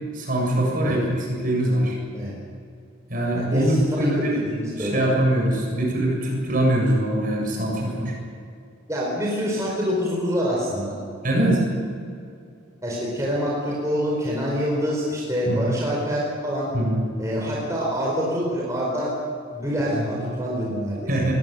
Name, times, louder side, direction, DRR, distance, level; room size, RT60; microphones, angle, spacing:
voice 1, 0.1-2.0 3.1-4.4 4.7-8.1 11.2-11.6 15.5-15.7 16.7-17.0 17.5-17.6 19.9-20.1 21.1-21.3, right 1 dB, 40° right, -1 dB, 7.3 m, -22 dB
voice 2, 3.3-5.0 8.9-10.9 12.8-16.7 17.2-19.1 19.5-21.0, equal, 15° right, -4 dB, 4.8 m, -26 dB
21.5 x 17.0 x 9.3 m, 2.4 s
head